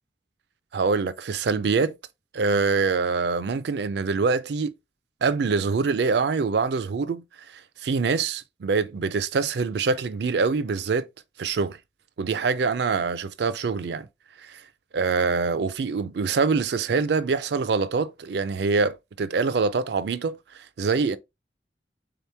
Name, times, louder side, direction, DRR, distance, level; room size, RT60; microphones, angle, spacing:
voice 1, 0.7-1.9 2.3-4.7 5.2-7.2 7.5-11.1 11.4-11.8 12.2-14.1 14.4-14.6 14.9-21.2, right 4 dB, 65° right, 0.4 m, -25 dB
3.9 x 2.9 x 3.3 m
head